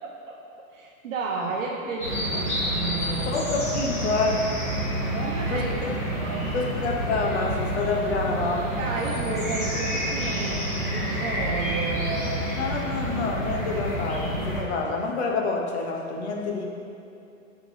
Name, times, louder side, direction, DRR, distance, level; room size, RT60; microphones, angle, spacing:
voice 1, 0.0-3.5 5.1-6.8 8.8-12.5 16.5-16.7, right 3 dB, 65° right, -2 dB, 0.9 m, -33 dB
Early Summer Morning Ambience with Birds Berlin, 2.0-14.6, right 1 dB, 10° left, 0.4 m, -28 dB
voice 2, 3.3-4.5 5.5-6.0 6.5-8.7 12.6-16.7, left 3 dB, 50° left, 1 dB, 1.0 m, -27 dB
10.5 x 3.7 x 3.1 m, 2.7 s
hypercardioid pair, 160°, 41 cm